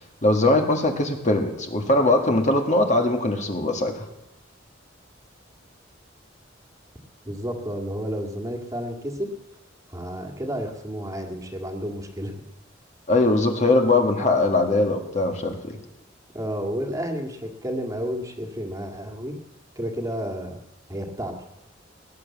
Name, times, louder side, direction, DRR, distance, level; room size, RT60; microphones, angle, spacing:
voice 1, 0.2-3.9 13.1-15.8, left 2 dB, 40° left, 3 dB, 1.8 m, -21 dB
voice 2, 7.2-9.3 9.9-12.3 16.3-19.4 19.8-20.6 20.9-21.3, equal, 20° right, 3 dB, 1.9 m, -31 dB
19.0 x 9.6 x 7.2 m, 0.90 s
head